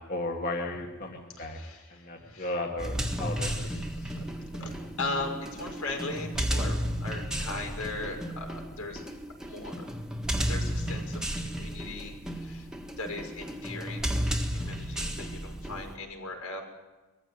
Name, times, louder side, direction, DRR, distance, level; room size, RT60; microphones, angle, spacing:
voice 1, 0.0-1.6 1.9-3.5, left 2 dB, 40° left, 0 dB, 2.0 m, -34 dB
voice 2, 1.4-2.6 3.4-9.1 9.4-9.9 10.5-16.6, left 2 dB, 80° left, 2 dB, 5.8 m, -39 dB
sound 1, 2.8-15.9, equal, 5° right, 1.6 m, -33 dB
22.5 x 15.0 x 9.4 m, 1.2 s
head